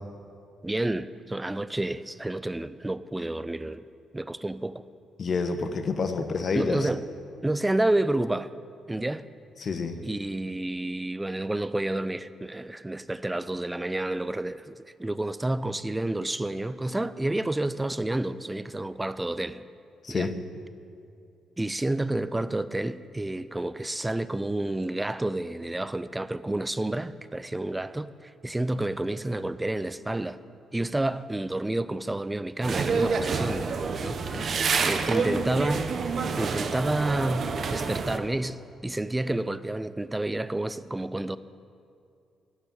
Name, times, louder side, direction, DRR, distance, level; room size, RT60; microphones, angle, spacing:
voice 1, 0.6-3.8 4.1-4.8 6.2-6.3 6.5-7.0 7.4-8.5 8.9-9.3 10.0-19.6 20.1-20.3 21.6-30.4 30.7-33.7 34.0-34.6 34.9-35.9 36.4-41.4, right 1 dB, 10° right, 0.4 m, -29 dB
voice 2, 5.2-6.9 9.6-10.0 20.0-20.3 34.3-34.5, left 4 dB, 45° left, 1.1 m, -28 dB
sound 1, 32.6-38.2, right 5 dB, 50° right, 0.9 m, -28 dB
11.5 x 7.3 x 9.0 m
cardioid pair, 90°, 0 cm